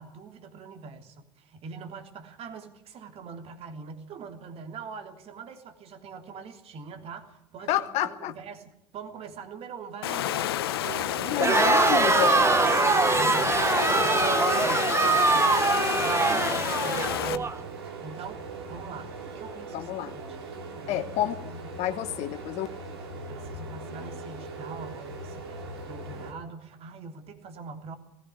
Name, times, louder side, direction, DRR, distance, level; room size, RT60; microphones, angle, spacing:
voice 1, 0.0-11.5 12.1-15.6 16.0-17.6 18.0-18.4 18.7-20.4 20.8-21.7 23.2-28.0, right 5 dB, 55° right, 7 dB, 3.3 m, -43 dB
voice 2, 7.7-8.3 11.2-12.4 19.7-20.2 20.9-21.4 21.8-22.7, left 13 dB, 65° left, 8 dB, 1.4 m, -29 dB
Water, 10.0-17.4, left 13 dB, 90° left, 0.8 m, -30 dB
sound 1, 10.8-26.3, right 3 dB, 90° right, 3.4 m, -40 dB
Crowd, 11.4-17.5, right 4 dB, 20° right, 1.4 m, -23 dB
19.0 x 16.0 x 9.6 m, 0.82 s
hypercardioid pair, 75°, 12 cm